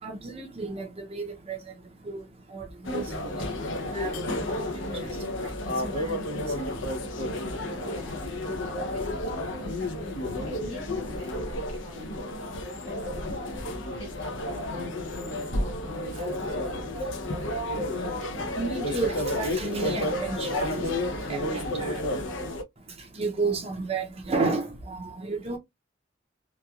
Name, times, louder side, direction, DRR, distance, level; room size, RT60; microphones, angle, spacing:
voice 1, 0.0-1.6 2.0-2.2 2.5-2.7 2.9-3.0 3.9-4.1 5.9-6.1 6.6-6.7 18.6-20.9 21.3-22.0 23.2-25.6, right 3 dB, 30° right, 0.5 m, -31 dB
sound 1, 2.9-22.6, left 1 dB, 80° left, 0.6 m, -31 dB
voice 2, 7.8-16.9 17.8-18.0, left 1 dB, 30° left, 1.3 m, -46 dB
2.9 x 2.2 x 2.3 m
head